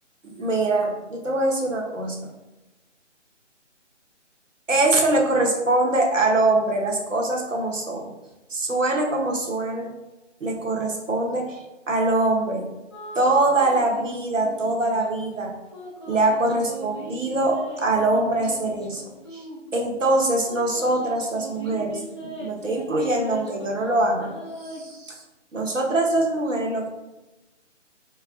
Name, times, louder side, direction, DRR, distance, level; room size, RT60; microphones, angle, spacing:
voice 1, 0.2-2.2 4.7-8.1 8.5-9.9 10.4-12.7 13.1-15.5 16.1-19.0 19.3-19.4 19.7-24.3 24.6-25.2 25.5-26.9, right 2 dB, 80° right, 0 dB, 1.2 m, -23 dB
sound 1, 12.9-14.1 14.4-15.2 15.7-19.9 20.5-23.8 24.1-24.9, right 2 dB, 25° left, 0.5 m, -39 dB
4.6 x 4.6 x 2.4 m, 1.1 s
figure-of-eight pair, 145°, 37 cm